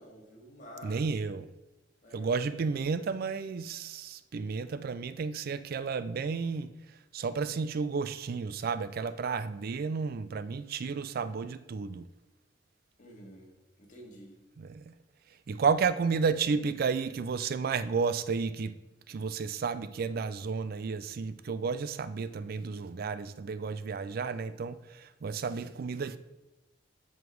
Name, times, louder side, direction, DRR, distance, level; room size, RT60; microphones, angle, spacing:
voice 1, 0.0-1.0 2.0-3.0 13.0-13.5 13.8-14.4, equal, 45° left, 2.0 m, -50 dB
voice 2, 0.8-1.5 2.1-12.1 14.6-14.9 15.5-18.8 19.1-26.2, right 5 dB, 55° right, 0.4 m, -32 dB
7.9 x 5.1 x 4.6 m
head